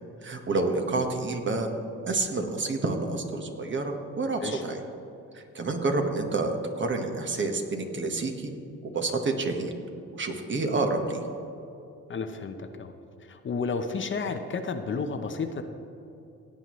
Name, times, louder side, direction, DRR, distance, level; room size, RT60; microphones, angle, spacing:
voice 1, 0.2-1.7 2.1-4.8 5.3-8.5 8.8-9.7 10.1-11.2, right 3 dB, 40° right, 4 dB, 1.4 m, -29 dB
voice 2, 12.1-12.9 13.2-15.6, left 4 dB, 40° left, 7 dB, 0.8 m, -32 dB
17.0 x 8.7 x 3.1 m, 2.7 s
cardioid pair, 90°, 30 cm